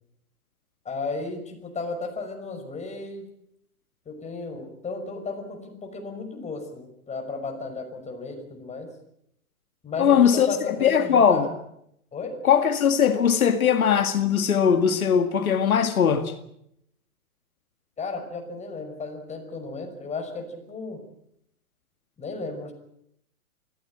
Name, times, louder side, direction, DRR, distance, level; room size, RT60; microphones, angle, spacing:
voice 1, 0.8-3.3 4.1-8.9 9.8-11.5 12.1-12.4 18.0-21.0 22.2-22.7, left 3 dB, 15° left, 5.8 m, -34 dB
voice 2, 10.0-11.5 12.4-16.3, left 7 dB, 75° left, 2.2 m, -20 dB
25.0 x 15.5 x 8.7 m
hypercardioid pair, 115°, 43 cm